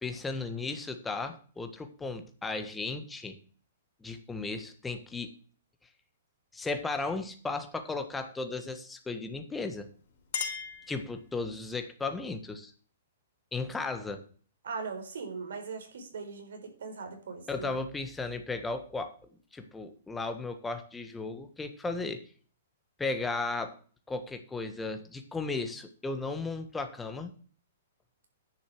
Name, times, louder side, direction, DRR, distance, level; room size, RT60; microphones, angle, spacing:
voice 1, 0.0-3.4 4.0-5.3 6.5-9.9 10.9-12.7 13.5-14.2 17.5-19.1 19.5-22.2 23.0-23.7 24.1-27.3, left 3 dB, 10° left, 7 dB, 1.5 m, -35 dB
Chink clink, 9.8-11.6, left 7 dB, 60° left, 3.3 m, -39 dB
voice 2, 14.6-17.7, right 5 dB, 75° right, 5 dB, 4.2 m, -39 dB
10.5 x 6.7 x 6.1 m, 0.42 s
hypercardioid pair, 140°, 0 cm